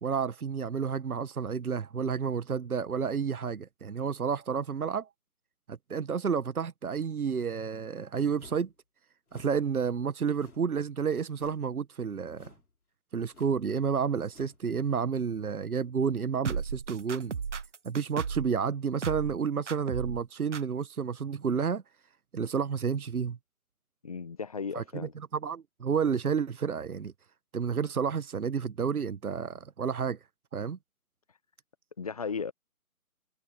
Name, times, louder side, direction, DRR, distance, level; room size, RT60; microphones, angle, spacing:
voice 1, 0.0-5.1 5.7-8.7 9.3-12.5 13.1-17.3 17.8-21.8 22.3-23.4 24.7-27.1 27.5-30.2 30.5-30.8, right 6 dB, 75° right, 1.2 m, -30 dB
sound 1, 8.4-8.7 9.3-9.6 10.4-10.8 11.3-11.7 12.3-12.7 13.3-13.6 14.3-14.6, left 3 dB, 75° left, 4.2 m, -54 dB
sound 2, 16.4-18.5 19.0-19.4 19.7-20.2 20.5-20.6, right 6 dB, 55° right, 1.1 m, -34 dB
voice 2, 24.0-25.1 32.0-32.5, left 5 dB, 25° left, 1.0 m, -35 dB
figure-of-eight pair, 160°, 44 cm